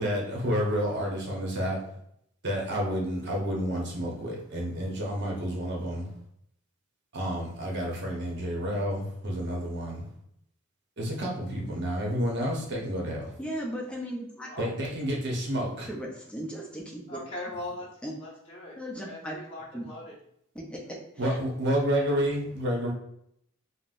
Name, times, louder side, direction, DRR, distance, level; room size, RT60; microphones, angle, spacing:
voice 1, 0.0-1.8 2.4-6.1 7.1-10.1 11.0-13.3 14.6-15.9 21.2-22.9, equal, 55° right, -1 dB, 0.8 m, -30 dB
voice 2, 13.4-14.5 15.9-17.2 18.0-18.1 18.8-19.4 19.7-19.8 20.5-21.0 21.2-21.4, equal, 5° left, -2 dB, 0.5 m, -36 dB
voice 3, 17.1-18.8 19.0-20.1, left 1 dB, 30° left, -4 dB, 0.9 m, -40 dB
3.8 x 2.0 x 2.5 m, 0.71 s
head